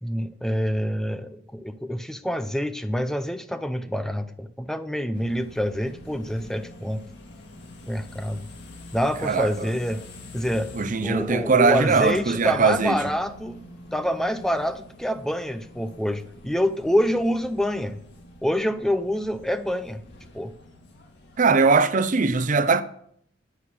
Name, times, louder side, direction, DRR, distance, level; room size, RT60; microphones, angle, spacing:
voice 1, 0.0-7.0 7.9-8.5 8.9-10.0 10.3-10.7 11.0-13.6 13.9-18.0 18.4-20.0 20.3-20.5, equal, ahead, 0.5 m, -26 dB
sound 1, 5.1-21.7, left 2 dB, 60° left, 2.0 m, -45 dB
voice 2, 9.2-9.7 10.7-13.0 21.4-22.8, right 4 dB, 40° right, 0.6 m, -20 dB
9.9 x 9.7 x 6.1 m
head